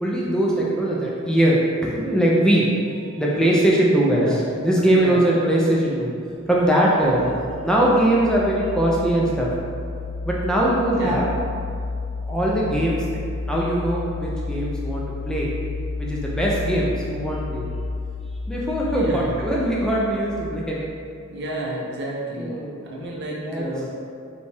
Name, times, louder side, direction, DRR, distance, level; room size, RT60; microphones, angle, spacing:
voice 1, 0.0-6.1 6.5-7.3 7.6-9.5 10.2-11.3 12.2-13.2 13.5-15.5 16.0-17.7 18.5-20.9 22.4-22.9 23.4-23.7, right 1 dB, 5° left, -5 dB, 0.4 m, -21 dB
sound 1, 6.9-20.9, left 3 dB, 80° left, 0.4 m, -32 dB
voice 2, 19.0-19.3 21.3-23.9, right 1 dB, 55° right, -3 dB, 0.7 m, -30 dB
5.0 x 2.3 x 3.3 m, 2.4 s
head